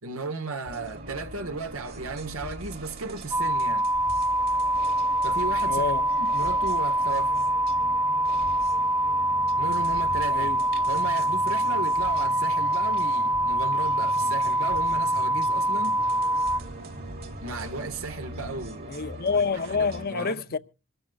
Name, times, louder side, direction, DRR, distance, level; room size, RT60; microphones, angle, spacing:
voice 1, 0.0-3.9 5.2-5.8 6.2-7.4 9.6-10.5 10.9-16.0 17.4-19.0 19.8-20.6, right 3 dB, 75° right, 1.6 m, -35 dB
sound 1, 0.6-20.1, right 2 dB, 50° right, 2.5 m, -41 dB
sound 2, 3.3-16.6, right 1 dB, 20° right, 0.9 m, -25 dB
voice 2, 5.7-6.1 10.3-10.6 18.9-20.6, left 5 dB, 45° left, 0.7 m, -27 dB
25.5 x 13.0 x 2.4 m
head